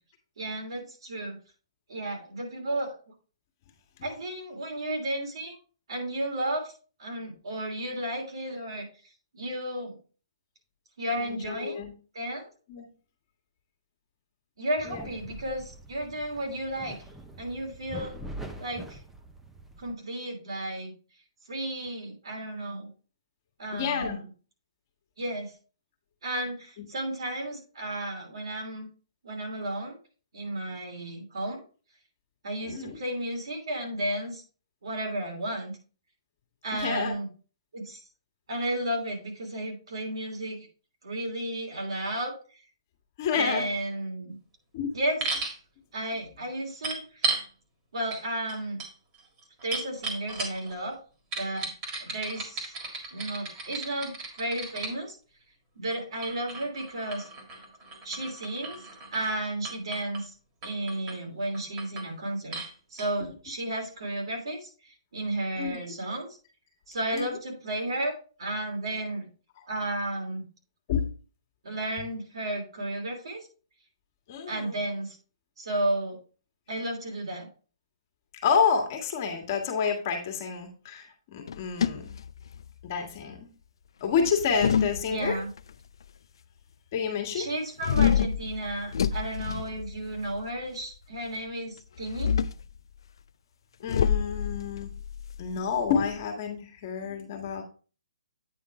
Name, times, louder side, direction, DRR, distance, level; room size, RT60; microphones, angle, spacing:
voice 1, 0.4-1.4 1.9-2.9 4.0-5.5 5.9-6.7 7.0-8.9 9.3-10.0 11.0-11.8 12.1-12.5 14.6-16.9 17.4-18.2 18.6-19.0 19.8-20.9 21.5-22.9 23.6-24.2 25.2-25.5 26.2-28.9 29.2-30.0 30.3-31.6 32.4-34.4 34.8-35.8 36.6-37.3 37.7-38.0 38.5-40.7 41.0-42.3 43.3-44.4 44.9-45.2 45.9-47.0 47.9-48.8 49.6-51.0 51.3-51.7 52.0-52.6 53.1-55.2 55.8-57.3 58.0-58.8 59.1-60.3 60.6-62.6 62.9-64.7 65.1-66.3 66.9-68.1 68.4-69.3 69.7-70.4 71.6-73.4 74.5-75.2 75.6-76.2 76.7-77.5 85.1-85.5 87.3-92.3, right 1 dB, 75° right, 1 dB, 3.1 m, -33 dB
voice 2, 11.2-11.9 12.7-12.9 14.8-15.0 23.7-24.2 26.8-26.9 32.6-33.0 36.7-37.1 43.2-43.7 44.7-45.0 65.6-65.8 67.1-67.4 70.9-71.1 74.3-74.8 78.4-82.1 82.8-83.5 84.0-85.4 86.9-87.5 93.8-94.9 95.4-97.6, left 6 dB, 35° left, 3 dB, 1.5 m, -29 dB
sound 1, 14.8-19.9, right 1 dB, 5° right, 0.6 m, -44 dB
sound 2, 45.2-45.6 46.8-47.5 48.1-48.2 48.5-50.7 51.3-54.9 55.9-59.4 59.6-60.2 60.6-61.2 61.5-62.1 62.5-62.7 63.0-63.1, right 3 dB, 25° right, 1.7 m, -35 dB
sound 3, 81.5-82.9 84.2-85.6 87.8-90.4 92.0-92.7 93.9-96.2, left 8 dB, 60° left, 0.4 m, -28 dB
8.8 x 3.7 x 4.7 m, 0.38 s
hypercardioid pair, 160°, 3 cm